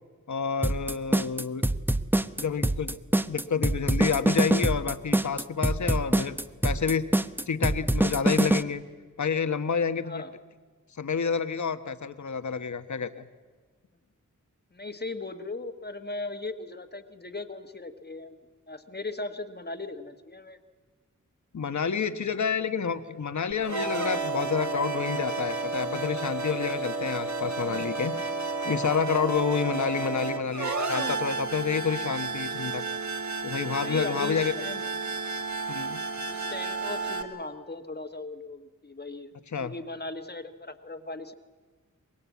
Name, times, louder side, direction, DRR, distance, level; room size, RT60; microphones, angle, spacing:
voice 1, 0.3-1.6 2.4-3.0 3.3-7.1 7.5-8.8 9.2-10.2 11.0-13.3 21.5-28.2 28.6-32.8 33.4-34.5 35.7-36.0 39.5-39.7, left 6 dB, 60° left, 10 dB, 1.2 m, -29 dB
sound 1, 0.6-8.6, right 1 dB, 5° right, 0.7 m, -24 dB
voice 2, 14.7-18.4 18.7-20.6 33.8-34.8 36.3-39.3 39.6-41.3, left 2 dB, 30° left, 6 dB, 1.3 m, -38 dB
sound 2, 23.6-37.2, right 4 dB, 60° right, 2.0 m, -32 dB
24.0 x 21.5 x 8.3 m, 1.4 s
wide cardioid pair, 75°, 32 cm